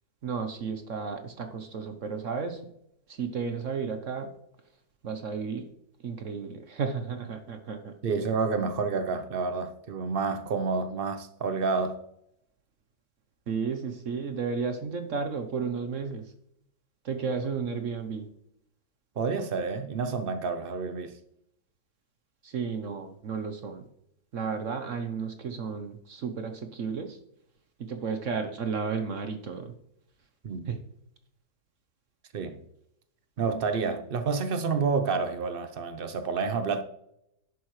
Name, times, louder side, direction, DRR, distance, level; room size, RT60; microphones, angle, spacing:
voice 1, 0.2-2.6 3.2-4.3 5.0-5.7 6.0-7.9 13.5-16.2 17.0-18.3 22.4-23.8 24.3-27.2 27.8-29.7 30.7-30.8, right 5 dB, 55° right, 1.0 m, -33 dB
voice 2, 8.0-12.0 19.2-21.1 30.4-30.7 32.3-32.6 33.4-36.8, right 4 dB, 80° right, 0.5 m, -29 dB
11.0 x 8.2 x 3.2 m
omnidirectional pair, 2.0 m